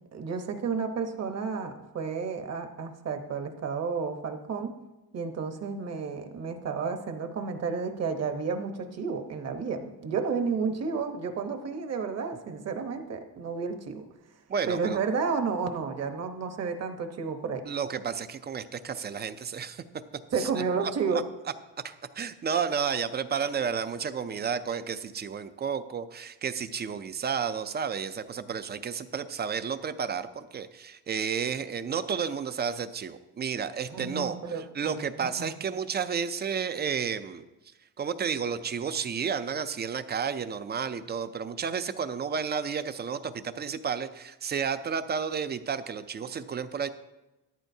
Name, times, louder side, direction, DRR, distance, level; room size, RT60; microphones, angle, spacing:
voice 1, 0.1-4.7 5.1-14.1 14.7-17.6 20.3-21.2 33.9-35.5, right 5 dB, 45° right, 7 dB, 1.0 m, -31 dB
voice 2, 14.5-15.0 17.7-19.8 20.3-20.5 21.8-37.5 38.0-46.9, right 6 dB, 30° right, 12 dB, 0.4 m, -32 dB
13.5 x 11.0 x 2.7 m, 1.0 s
cardioid pair, 155°, 37 cm